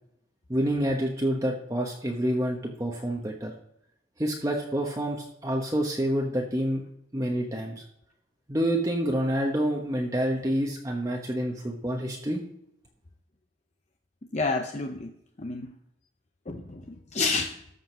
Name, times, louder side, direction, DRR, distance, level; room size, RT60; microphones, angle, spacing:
voice 1, 0.5-3.5 4.2-6.8 7.1-7.8 8.5-12.4, equal, 20° right, 0 dB, 1.1 m, -28 dB
voice 2, 14.3-15.1 15.4-15.7 16.5-17.6, left 3 dB, 35° left, 4 dB, 0.6 m, -30 dB
13.5 x 5.1 x 6.1 m, 0.77 s
head